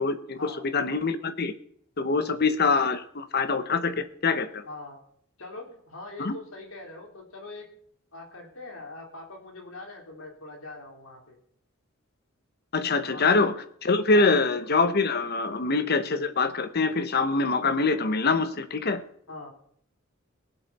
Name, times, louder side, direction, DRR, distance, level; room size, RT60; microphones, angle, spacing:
voice 1, 0.0-1.5 2.0-4.6 6.2-6.3 12.7-13.5 13.8-19.0, left 4 dB, 50° left, 11 dB, 0.9 m, -24 dB
voice 2, 2.1-2.5 4.7-5.0 5.4-7.7 8.1-11.4 13.1-13.3 14.1-14.4 19.3-19.5, left 2 dB, 90° left, 1 dB, 3.7 m, -42 dB
21.5 x 7.9 x 4.2 m, 0.63 s
head